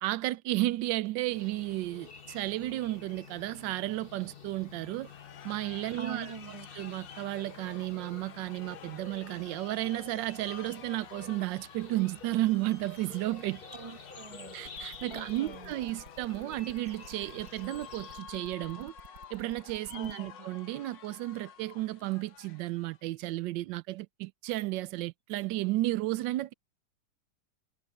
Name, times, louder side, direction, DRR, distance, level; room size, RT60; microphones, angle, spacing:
voice 1, 0.0-5.1 5.4-6.3 6.8-13.6 14.5-18.9 19.3-26.5, right 17 dB, 90° right, 1.3 m, -33 dB
sound 1, 1.3-18.2, left 5 dB, 35° left, 1.4 m, -50 dB
sound 2, 5.0-23.0, left 8 dB, 85° left, 1.7 m, -51 dB
voice 2, 6.0-6.7 13.7-14.6 15.1-15.7 19.9-20.5, right 4 dB, 15° right, 1.4 m, -44 dB
sound 3, 14.6-20.1, right 3 dB, 70° right, 4.7 m, -52 dB
omnidirectional pair, 1.9 m